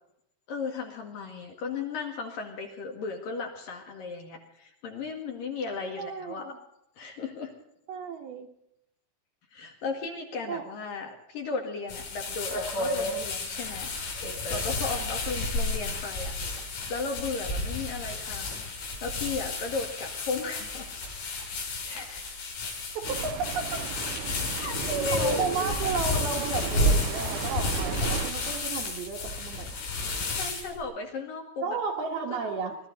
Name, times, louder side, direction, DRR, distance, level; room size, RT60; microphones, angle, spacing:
voice 1, 0.5-6.5 7.0-7.5 9.5-13.9 14.2-16.3 16.9-20.9 21.8-22.4 24.5-25.6 27.8-27.9 30.1-31.8 32.3-32.4, left 4 dB, 55° left, 2 dB, 3.1 m, -35 dB
voice 2, 6.0-6.4 7.9-8.5 10.5-10.6 23.2-23.8 25.1-29.7 31.6-32.8, right 5 dB, 65° right, 2 dB, 2.7 m, -33 dB
sound 1, 11.9-30.8, left 2 dB, 85° left, 7.2 m, -31 dB
sound 2, 23.1-28.3, right 11 dB, 80° right, 3.2 m, -37 dB
22.5 x 13.5 x 4.0 m, 0.77 s
omnidirectional pair, 5.5 m